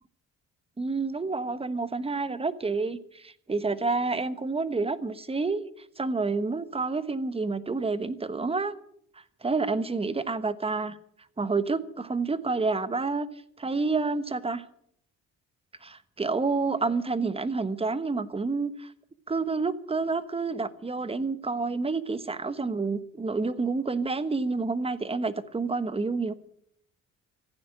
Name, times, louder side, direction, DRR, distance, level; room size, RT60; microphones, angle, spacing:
voice 1, 0.8-5.6 6.0-8.7 9.4-11.0 11.4-13.3 13.6-14.6 15.8-18.9 19.3-26.3, right 3 dB, 20° right, 14 dB, 1.2 m, -29 dB
15.0 x 9.5 x 8.9 m, 0.69 s
cardioid pair, 90°, 30 cm